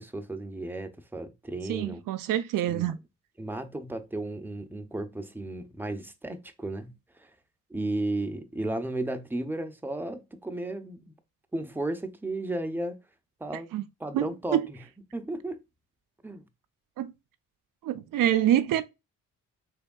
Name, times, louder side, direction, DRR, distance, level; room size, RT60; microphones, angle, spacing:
voice 1, 0.0-2.0 2.7-2.9 3.4-7.3 7.7-11.1 11.5-13.0 13.4-13.7 14.0-14.8 15.1-15.6 16.2-16.4, right 2 dB, 5° right, 0.7 m, -34 dB
voice 2, 1.7-3.0 13.7-13.8 14.1-14.6 17.0-17.1 17.8-18.8, right 11 dB, 75° right, 0.5 m, -26 dB
3.4 x 3.4 x 2.3 m
cardioid pair, 65°, 33 cm